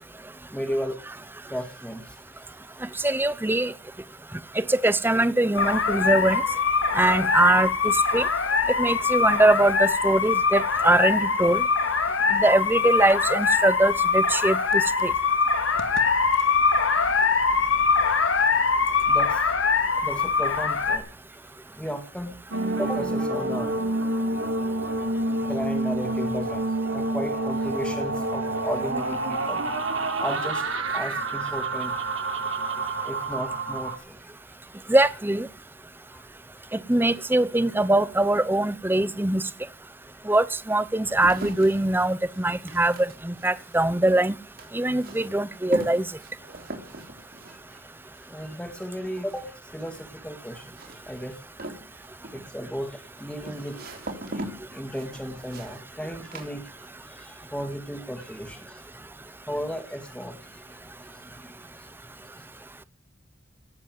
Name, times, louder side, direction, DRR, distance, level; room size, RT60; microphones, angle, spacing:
voice 1, 0.5-1.0 1.5-2.2 2.9-3.0 17.6-17.7 18.7-18.8 19.0-19.5 19.9-21.1 21.3-21.4 21.7-22.4 22.8-23.7 24.8-25.1 25.4-26.6 26.9-29.6 30.2-30.6 30.9-32.4 33.0-34.2 36.1-36.2 47.5-47.8 48.2-51.7 52.3-54.0 54.3-58.9 59.5-61.9 62.2-62.5, equal, 5° left, 2.0 m, -35 dB
voice 2, 3.0-3.7 4.6-6.4 6.9-8.3 8.8-11.6 12.3-15.1 34.9-35.5 36.9-39.4 40.3-44.3 44.7-46.0, right 1 dB, 10° right, 0.7 m, -22 dB
sound 1, 5.6-21.0, left 5 dB, 85° left, 2.1 m, -23 dB
sound 2, 22.5-34.0, right 2 dB, 85° right, 3.6 m, -28 dB
sound 3, 40.0-57.2 57.5-58.1, right 1 dB, 50° right, 3.8 m, -41 dB
18.0 x 8.3 x 9.4 m
head